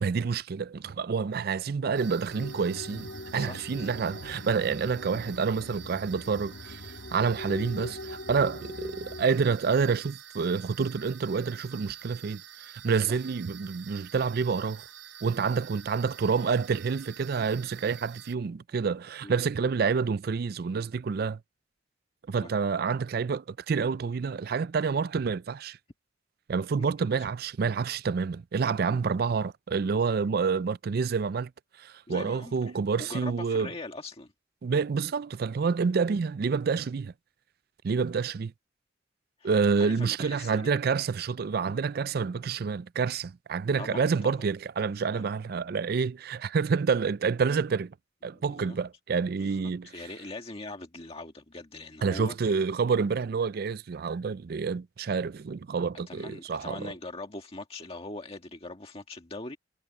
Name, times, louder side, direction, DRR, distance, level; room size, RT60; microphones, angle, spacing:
voice 1, 0.0-6.8 7.1-12.4 12.8-14.8 15.2-21.4 22.3-25.8 26.5-31.5 31.8-33.7 34.6-37.1 37.8-38.5 39.4-47.9 48.2-49.9 52.0-56.9, right 5 dB, 55° right, 0.4 m, -28 dB
sound 1, 1.9-18.3, right 10 dB, 70° right, 1.1 m, -48 dB
sound 2, 2.3-9.2, left 1 dB, 85° left, 1.9 m, -42 dB
voice 2, 3.4-3.9 13.1-13.2 16.3-16.4 19.2-19.7 22.4-22.5 26.8-27.3 28.9-29.1 32.1-34.3 39.4-40.7 43.8-44.4 45.1-45.3 48.3-48.8 49.4-52.6 56.1-59.6, left 2 dB, 30° left, 1.8 m, -42 dB
head